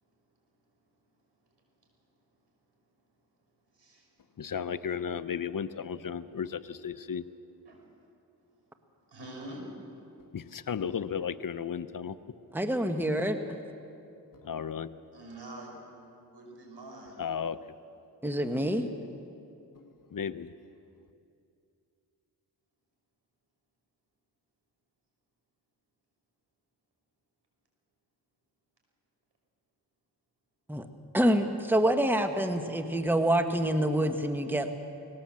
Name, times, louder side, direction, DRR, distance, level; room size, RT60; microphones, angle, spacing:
voice 1, 3.7-4.1 7.7-7.8 9.1-9.6 15.1-15.7 16.3-17.2, right 1 dB, 85° right, 0 dB, 5.3 m, -45 dB
voice 2, 4.4-7.3 10.3-12.4 14.4-15.0 17.2-17.6 19.8-20.5, left 7 dB, 55° left, 14 dB, 0.7 m, -34 dB
voice 3, 12.5-13.4 18.2-18.9 30.7-30.9 31.1-34.7, right 1 dB, 5° right, 6 dB, 1.3 m, -26 dB
20.0 x 17.5 x 7.6 m, 2.7 s
cardioid pair, 55°, 40 cm